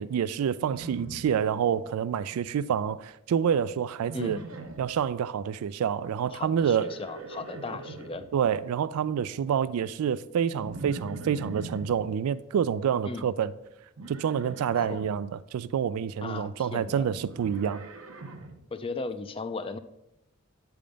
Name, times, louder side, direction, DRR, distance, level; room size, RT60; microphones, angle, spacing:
voice 1, 0.0-4.4 4.8-6.9 8.3-13.5 14.1-17.8, right 8 dB, 80° right, 0.3 m, -28 dB
Livestock farm animals working animals, 0.6-1.9 2.2-2.7 4.0-5.0 6.6-8.3 10.6-12.0 14.0-15.1 16.9-18.6, right 2 dB, 65° right, 0.8 m, -42 dB
voice 2, 4.1-4.4 6.3-8.2 13.1-13.2 14.8-15.1 16.2-17.0 18.7-19.8, left 3 dB, 25° left, 0.3 m, -37 dB
8.6 x 3.5 x 5.1 m
head